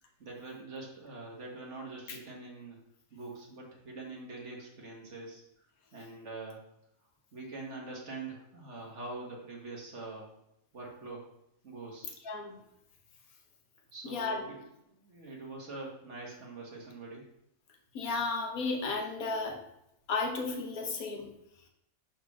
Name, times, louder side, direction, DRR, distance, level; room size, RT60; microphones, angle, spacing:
voice 1, 0.2-2.8 3.1-5.4 5.9-6.6 7.3-10.3 10.7-11.3 11.6-12.1 13.9-14.6 14.9-17.2, right 3 dB, 55° right, -1 dB, 1.8 m, -44 dB
voice 2, 12.2-12.6 14.0-14.4 17.9-19.6 20.1-21.3, left 3 dB, 85° left, 3 dB, 1.5 m, -33 dB
5.0 x 4.3 x 6.0 m, 0.81 s
omnidirectional pair, 1.5 m